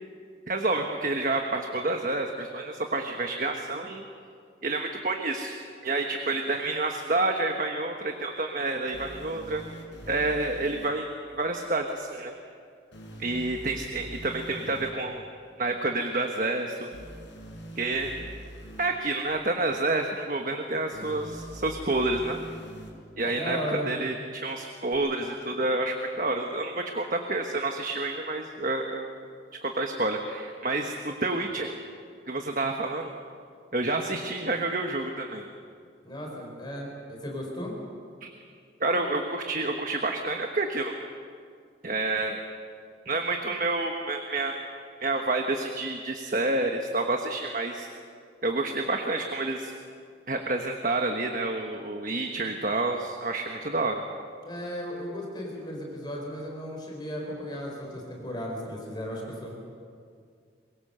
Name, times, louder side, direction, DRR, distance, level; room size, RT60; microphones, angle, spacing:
voice 1, 0.5-4.0 4.6-5.5 5.8-9.6 10.1-12.3 13.2-15.2 15.6-16.9 17.8-18.1 18.8-22.4 23.2-29.1 29.6-31.7 32.3-33.1 33.7-35.4 38.2-38.3 38.8-40.9 41.8-42.4 43.0-44.6 45.0-47.9 48.4-49.7 50.3-54.0, right 2 dB, 45° right, 3 dB, 1.3 m, -29 dB
sound 1, 8.9-10.9 12.9-14.9 16.9-18.9 20.9-22.9 24.9-25.0, right 1 dB, 80° left, 5.7 m, -43 dB
voice 2, 23.2-23.9 36.0-37.8 54.4-59.5, equal, 25° left, -1 dB, 4.4 m, -35 dB
23.5 x 21.5 x 6.8 m, 2.2 s
head